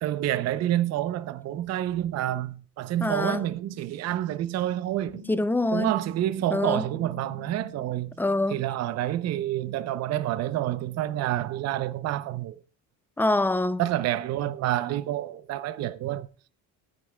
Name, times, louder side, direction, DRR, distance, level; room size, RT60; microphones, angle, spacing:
voice 1, 0.0-5.2 5.7-8.1 8.5-12.6 13.8-16.3, right 13 dB, 45° right, 0.7 m, -28 dB
voice 2, 3.0-3.4 5.3-5.9 6.5-6.8 8.2-8.6 13.2-13.8, left 2 dB, 5° left, 0.4 m, -25 dB
sound 1, 3.3-9.6, left 1 dB, 60° left, 4.6 m, -49 dB
17.0 x 9.4 x 2.3 m
cardioid pair, 120°, 36 cm